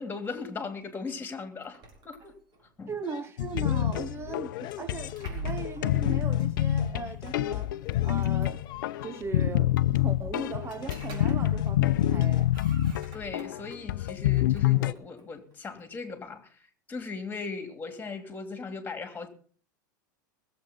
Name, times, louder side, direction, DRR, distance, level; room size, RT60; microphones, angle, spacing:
voice 1, 0.0-1.8 2.0-2.3 2.8-2.9 13.1-16.5 16.9-19.3, left 4 dB, 20° left, 3.0 m, -38 dB
sound 1, 1.6-2.7 4.7-6.0 7.3-7.4 7.9-9.0 10.6-11.8 12.1-13.8 14.3-15.9, right 3 dB, 45° right, 4.7 m, -45 dB
voice 2, 2.9-7.8 8.0-8.6 9.0-12.5, right 5 dB, 25° right, 0.6 m, -39 dB
sound 2, 3.0-5.8 6.0-6.5 6.8-7.0 7.2-9.3 10.4-10.6 10.8-11.3 11.6-11.8 12.0-12.5, left 14 dB, 45° left, 0.8 m, -45 dB
sound 3, 3.4-14.9, left 13 dB, 75° left, 0.6 m, -27 dB
20.5 x 7.9 x 5.3 m
hypercardioid pair, 100°, 11 cm